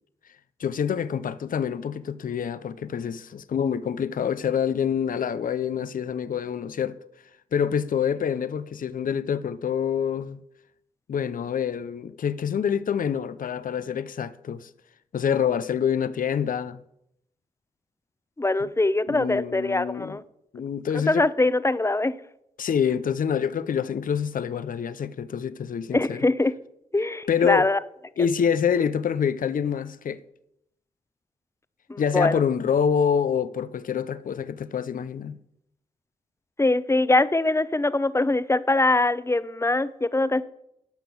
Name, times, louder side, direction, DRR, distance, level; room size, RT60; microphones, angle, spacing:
voice 1, 0.6-7.0 7.5-10.4 11.1-14.7 15.1-16.8 18.6-18.7 19.1-20.2 20.5-21.3 22.6-26.2 27.3-27.7 28.2-30.2 32.0-35.4, left 7 dB, 65° left, 0.6 m, -26 dB
voice 2, 18.4-20.2 20.9-22.2 25.9-26.5 26.9-27.8 31.9-32.4 36.6-40.4, left 2 dB, 20° left, 0.7 m, -23 dB
11.5 x 5.9 x 6.9 m
cardioid pair, 45°, 15 cm